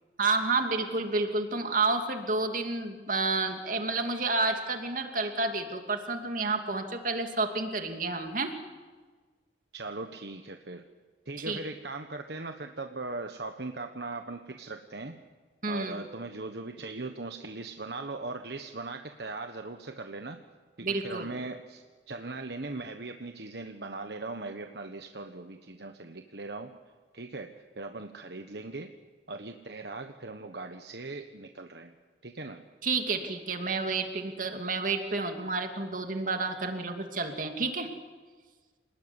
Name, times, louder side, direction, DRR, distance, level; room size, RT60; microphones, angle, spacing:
voice 1, 0.2-8.5 11.5-11.6 15.6-16.0 20.8-21.3 32.8-37.9, right 3 dB, 50° right, 5 dB, 2.8 m, -30 dB
voice 2, 9.7-10.8 11.2-15.2 15.7-20.4 20.8-26.7 27.1-28.9 29.3-31.9 32.2-32.6, right 3 dB, 65° right, 6 dB, 1.4 m, -39 dB
28.0 x 20.0 x 9.9 m, 1.4 s
head